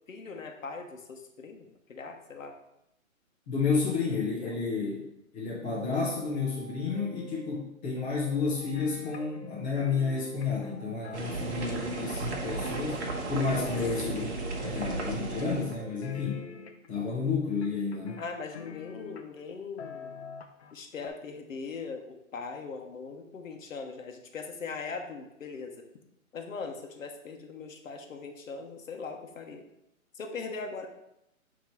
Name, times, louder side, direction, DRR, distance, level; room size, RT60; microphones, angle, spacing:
voice 1, 0.1-2.5 4.4-4.6 13.5-13.8 18.2-20.2 20.7-25.7 26.3-29.6 30.1-30.9, left 4 dB, 65° left, 4 dB, 1.1 m, -40 dB
voice 2, 3.5-5.0 5.3-13.0 13.3-14.3 14.6-16.4 16.9-18.2, left 4 dB, 15° left, -10 dB, 0.7 m, -31 dB
sound 1, 5.7-7.6 8.0-9.8 10.2-12.0 12.4-14.3 14.6-16.5, right 1 dB, 10° right, 1.6 m, -49 dB
sound 2, 8.7-9.5 9.8-12.0 12.6-13.3 13.5-14.5 14.8-15.7 16.0-17.0 17.6-19.4 19.8-20.7 21.0-21.1, left 6 dB, 50° left, 0.7 m, -44 dB
sound 3, 11.1-15.8, right 3 dB, 50° right, 1.1 m, -34 dB
8.4 x 3.1 x 4.5 m, 0.84 s
hypercardioid pair, 160°, 42 cm